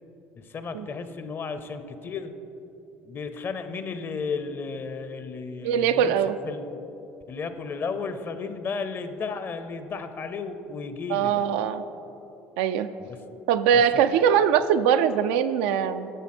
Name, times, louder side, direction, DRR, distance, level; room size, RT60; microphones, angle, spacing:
voice 1, 0.4-2.3 3.0-6.2 6.4-6.8 7.3-11.5 13.0-13.2 13.7-13.8, left 5 dB, 40° left, 10 dB, 0.7 m, -34 dB
voice 2, 5.6-6.3 11.1-11.8 12.6-12.9 13.5-16.1, right 8 dB, 85° right, 10 dB, 0.4 m, -22 dB
10.0 x 7.0 x 4.3 m, 2.9 s
supercardioid pair, 85°, 6 cm